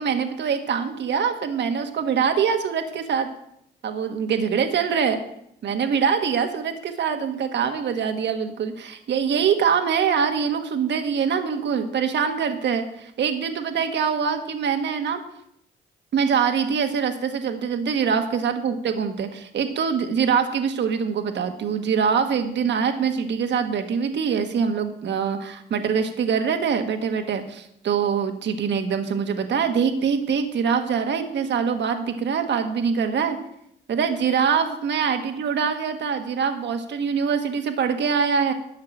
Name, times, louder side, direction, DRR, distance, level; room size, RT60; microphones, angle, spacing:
voice 1, 0.0-3.3 3.8-5.2 5.6-15.2 16.1-33.4 33.9-38.5, right 6 dB, 65° right, 6 dB, 1.5 m, -24 dB
12.0 x 5.9 x 8.9 m, 0.74 s
cardioid pair, 90°, 20 cm